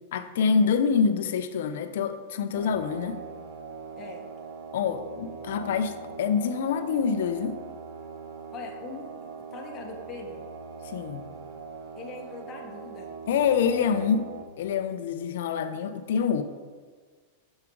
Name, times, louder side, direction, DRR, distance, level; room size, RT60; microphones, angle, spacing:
voice 1, 0.1-3.2 4.7-7.6 10.8-11.2 13.3-14.3 14.6-16.4, left 6 dB, 75° left, 10 dB, 0.6 m, -26 dB
sound 1, 2.5-14.4, right 5 dB, 80° right, 1.2 m, -41 dB
voice 2, 8.5-9.1 9.5-10.4 12.0-13.1, left 4 dB, 30° left, -1 dB, 1.1 m, -41 dB
7.2 x 6.5 x 4.6 m, 1.5 s
supercardioid pair, 130°, 0 cm